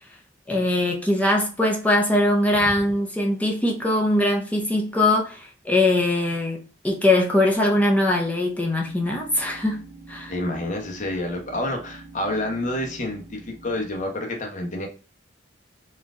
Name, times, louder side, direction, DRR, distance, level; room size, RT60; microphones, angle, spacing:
voice 1, 0.5-9.8 10.1-10.3, left 1 dB, 10° left, 0.7 m, -21 dB
sound 1, 1.4-1.7 7.8-14.0, right 3 dB, 30° right, 1.1 m, -46 dB
voice 2, 10.3-14.9, left 1 dB, 40° left, 0.9 m, -28 dB
4.3 x 2.5 x 3.6 m
head